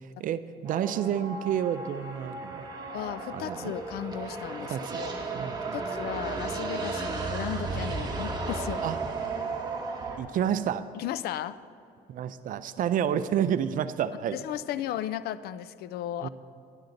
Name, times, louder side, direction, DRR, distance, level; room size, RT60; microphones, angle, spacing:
voice 1, 0.0-2.7 3.3-3.7 4.7-5.0 5.4-5.8 8.8-9.0 10.2-10.9 12.1-14.4 16.2-16.3, right 9 dB, 55° right, 13 dB, 0.5 m, -29 dB
sound 1, 0.6-10.2, right 3 dB, 25° right, 1.3 m, -34 dB
voice 2, 2.9-5.3 5.7-8.9 10.9-11.6 14.3-16.3, left 11 dB, 70° left, 16 dB, 0.4 m, -35 dB
11.0 x 11.0 x 3.9 m, 2.7 s
cardioid pair, 110°, 17 cm